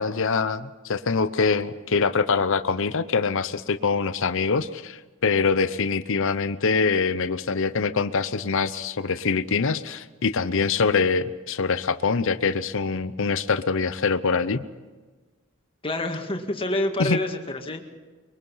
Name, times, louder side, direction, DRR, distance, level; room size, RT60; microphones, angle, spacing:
voice 1, 0.0-14.6 17.0-17.2, left 5 dB, 65° left, 13 dB, 0.7 m, -24 dB
voice 2, 15.8-17.8, left 1 dB, 25° left, 4 dB, 2.0 m, -27 dB
24.0 x 23.0 x 5.6 m, 1.3 s
head